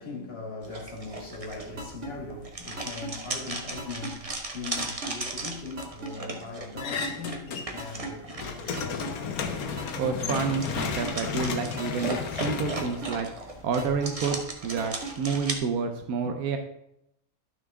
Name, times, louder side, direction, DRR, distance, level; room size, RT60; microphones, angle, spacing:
voice 1, 0.0-9.3 9.6-9.8 10.9-11.0, left 3 dB, 45° left, 2.1 m, -40 dB
sound 1, 0.6-15.6, right 2 dB, 25° right, 1.1 m, -38 dB
sound 2, 1.8-2.1 2.8-3.1 3.8-4.1 4.8-5.1 5.8-6.1 6.8-7.1 7.8-8.1 8.8-9.1 9.8-10.1 10.8-11.1 11.8-12.1 12.8-13.1 13.8-14.1 14.8-15.1, right 3 dB, 55° right, 2.6 m, -37 dB
sound 3, 6.8-7.9 8.2-13.6, left 6 dB, 85° left, 1.4 m, -33 dB
voice 2, 9.6-13.3 13.6-16.6, right 5 dB, 80° right, 1.3 m, -29 dB
12.0 x 6.3 x 3.6 m
omnidirectional pair, 1.5 m